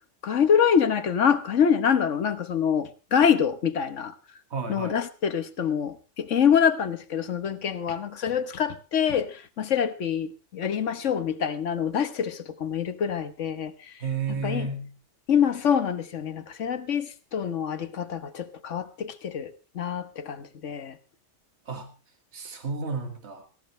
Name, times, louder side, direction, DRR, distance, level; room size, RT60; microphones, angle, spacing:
voice 1, 0.2-4.1 4.7-13.9 14.4-14.7 15.3-21.0, left 7 dB, 80° left, 1.4 m, -25 dB
voice 2, 4.5-5.0 14.0-15.0 21.7-21.9 22.3-23.5, right 4 dB, 65° right, 2.1 m, -32 dB
17.5 x 16.0 x 3.2 m
omnidirectional pair, 1.2 m